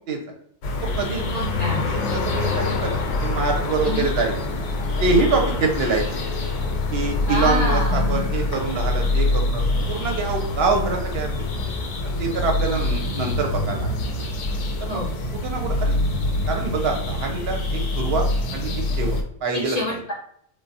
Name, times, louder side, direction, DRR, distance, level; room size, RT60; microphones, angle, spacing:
sound 1, 0.6-19.2, left 2 dB, 80° left, 0.9 m, -25 dB
voice 1, 1.3-1.9 3.8-4.1 7.3-8.3 14.9-15.1 19.6-20.1, left 2 dB, 50° left, -4 dB, 0.5 m, -27 dB
voice 2, 1.8-4.3 5.0-6.2 6.9-11.5 12.0-13.9 14.8-15.0 15.3-16.0 16.5-20.0, right 3 dB, 65° right, 2 dB, 0.7 m, -25 dB
3.3 x 2.1 x 2.6 m, 0.66 s
omnidirectional pair, 1.2 m